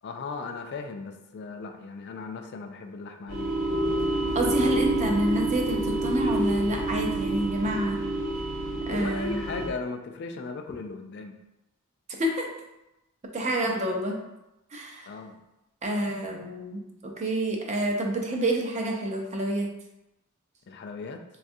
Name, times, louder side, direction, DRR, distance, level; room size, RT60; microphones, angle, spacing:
voice 1, 0.0-3.6 8.9-11.4 15.1-15.4 20.7-21.2, left 4 dB, 50° left, 5 dB, 0.3 m, -37 dB
sound 1, 3.3-9.7, right 2 dB, 75° right, 0.9 m, -28 dB
voice 2, 4.3-8.0 8.9-9.4 12.2-12.5 13.3-14.2 14.7-15.1 15.8-19.7, right 1 dB, 30° right, 1 dB, 0.5 m, -28 dB
4.0 x 2.3 x 2.6 m, 0.93 s
head